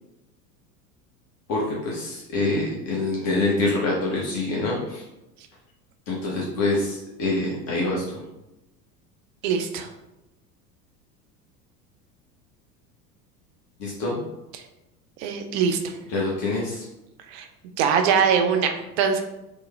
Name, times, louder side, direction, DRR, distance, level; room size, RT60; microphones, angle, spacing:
voice 1, 1.5-5.0 6.1-8.2 13.8-14.2 16.1-16.8, left 2 dB, 35° left, -4 dB, 0.7 m, -25 dB
voice 2, 9.4-9.9 14.5-14.6 15.2-15.9 17.3-17.5 17.8-19.2, right 6 dB, 45° right, 5 dB, 0.5 m, -22 dB
3.1 x 2.1 x 3.1 m, 0.96 s
figure-of-eight pair, 75°, 48 cm